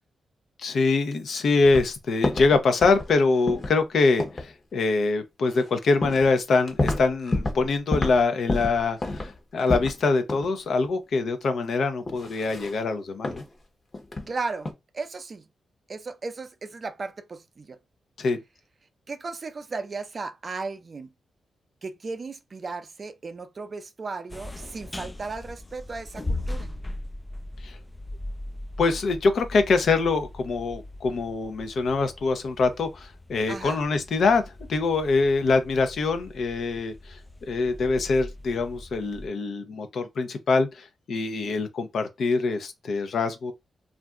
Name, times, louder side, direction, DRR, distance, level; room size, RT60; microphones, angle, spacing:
voice 1, 0.6-13.4 18.2-18.4 27.6-27.8 28.8-34.4 34.7-37.2 37.5-43.5, left 3 dB, 70° left, 0.6 m, -24 dB
sound 1, 1.6-1.9 2.2-2.6 2.8-3.1 3.5-3.8 4.2-4.5 5.6-5.7 6.0-6.3 6.6-7.6 7.9-8.2 8.5-10.0 10.3-10.5 10.9-11.0 12.1-12.8 13.2-13.5 13.9-14.3 14.6-14.7, left 2 dB, 35° left, 0.9 m, -29 dB
voice 2, 14.3-14.7 14.9-15.4 15.9-17.8 19.1-21.1 21.8-26.7 33.5-33.8, right 4 dB, 45° right, 0.5 m, -35 dB
sound 2, 24.3-39.3, left 1 dB, 20° left, 0.3 m, -39 dB
2.5 x 2.2 x 3.5 m
cardioid pair, 70°, 0 cm